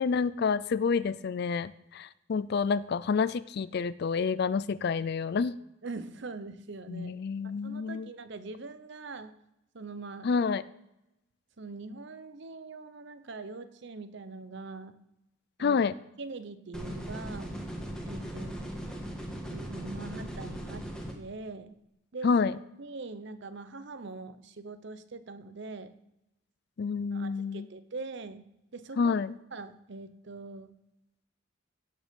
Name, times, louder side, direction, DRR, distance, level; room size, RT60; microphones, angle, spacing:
voice 1, 0.0-5.6 6.9-8.1 10.2-10.6 15.6-15.9 22.2-22.6 26.8-27.7 29.0-29.3, left 5 dB, 50° left, 18 dB, 0.3 m, -28 dB
voice 2, 5.8-7.2 7.6-9.3 9.7-10.3 11.6-15.0 15.6-15.8 16.2-17.5 18.0-18.7 19.4-20.9 21.1-21.8 22.1-22.3 22.8-25.9 27.1-28.4 28.7-29.2 29.5-30.7, right 3 dB, 55° right, 11 dB, 0.8 m, -42 dB
sound 1, 16.7-21.1, equal, 5° left, 1.6 m, -38 dB
17.0 x 6.4 x 5.2 m, 0.89 s
head